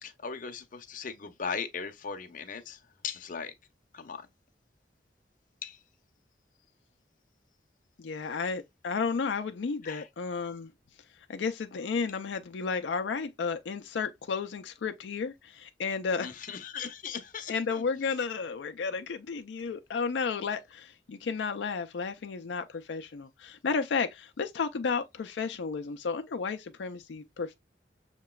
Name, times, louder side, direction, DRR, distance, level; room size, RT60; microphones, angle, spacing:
voice 1, 0.0-2.8 3.0-3.5 3.9-4.2 5.6-5.8 9.8-10.1 16.2-17.8, left 6 dB, 50° left, 0.7 m, -38 dB
voice 2, 8.0-10.7 11.3-16.3 17.5-27.5, left 5 dB, 85° left, 0.4 m, -32 dB
6.5 x 2.9 x 2.2 m
head